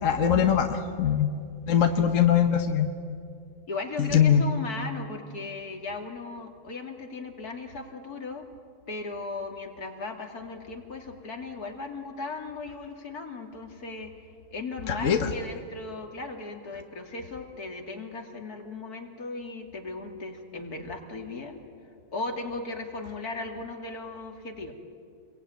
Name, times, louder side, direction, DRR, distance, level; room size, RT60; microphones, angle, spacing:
voice 1, 0.0-1.3 1.7-2.9 4.0-4.4 14.9-15.3, left 8 dB, 60° left, 5 dB, 1.5 m, -22 dB
voice 2, 1.7-2.1 3.7-8.5 8.9-14.1 14.5-21.6 22.1-24.7, left 3 dB, 80° left, 3 dB, 3.1 m, -37 dB
28.5 x 22.5 x 9.3 m, 2.4 s
omnidirectional pair, 1.6 m